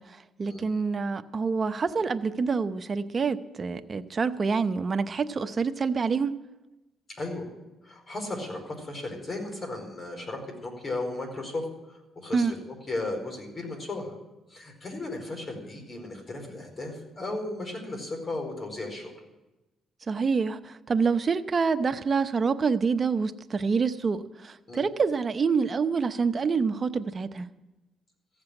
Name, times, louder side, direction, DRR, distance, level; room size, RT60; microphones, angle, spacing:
voice 1, 0.0-6.3 12.3-12.5 20.1-27.5, right 5 dB, 40° right, 10 dB, 0.7 m, -27 dB
voice 2, 7.8-14.1 14.5-19.1 24.7-24.8, left 2 dB, 35° left, 2 dB, 4.6 m, -35 dB
15.0 x 7.5 x 9.9 m, 1.0 s
cardioid pair, 90°, 0 cm